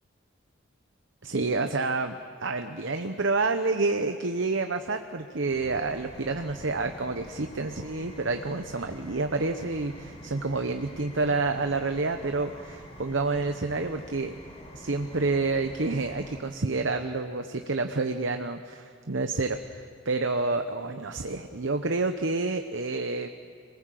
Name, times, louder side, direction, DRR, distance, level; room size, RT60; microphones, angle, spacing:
voice 1, 1.2-2.1 2.4-14.4 14.7-23.3, right 3 dB, 65° right, 7 dB, 0.9 m, -29 dB
sound 1, 5.4-16.4, equal, 30° left, 3.4 m, -46 dB
26.5 x 19.5 x 7.6 m, 2.5 s
head